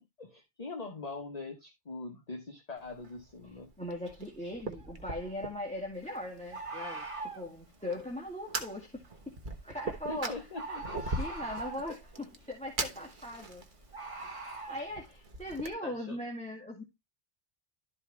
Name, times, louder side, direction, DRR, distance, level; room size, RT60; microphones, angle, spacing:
voice 1, 0.2-3.7 10.1-10.6 15.8-16.2, left 3 dB, 35° left, 1.3 m, -42 dB
Fire, 2.8-15.7, right 3 dB, 50° right, 1.4 m, -42 dB
voice 2, 3.8-9.4 9.6-10.3 10.7-13.6 14.4-16.8, left 1 dB, 5° left, 1.8 m, -40 dB
Bird, 4.8-4.9 6.5-7.5 9.7-10.0 10.5-11.9 13.9-14.8, right 3 dB, 30° right, 1.7 m, -41 dB
12.5 x 4.8 x 3.3 m
omnidirectional pair, 1.1 m